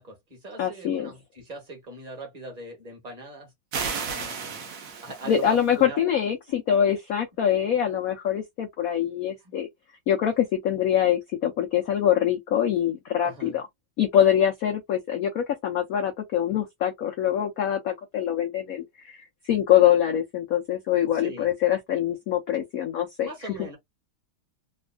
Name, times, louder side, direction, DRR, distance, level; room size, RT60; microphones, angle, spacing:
voice 1, 0.0-3.5 3.9-6.1 9.4-9.5 13.2-13.6 21.1-21.5 23.2-23.8, right 2 dB, 20° right, 1.3 m, -41 dB
voice 2, 0.6-1.1 5.3-9.7 10.1-13.7 14.0-23.3, left 10 dB, 85° left, 0.7 m, -24 dB
sound 1, 3.7-5.7, right 5 dB, 60° right, 0.9 m, -33 dB
3.3 x 2.4 x 2.2 m
omnidirectional pair, 2.3 m